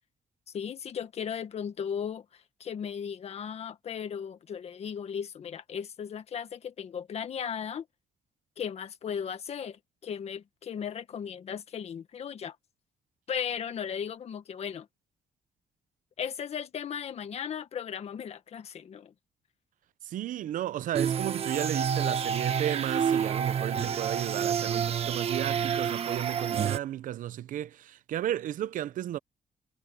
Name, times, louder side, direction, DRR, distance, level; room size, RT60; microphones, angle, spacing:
voice 1, 0.5-7.8 8.6-12.5 13.3-14.9 16.2-19.1, left 7 dB, 50° left, 1.7 m, -36 dB
voice 2, 20.0-29.2, right 12 dB, 75° right, 0.7 m, -33 dB
sound 1, 20.9-26.8, right 7 dB, 45° right, 1.4 m, -29 dB
cardioid pair, 155°, 14 cm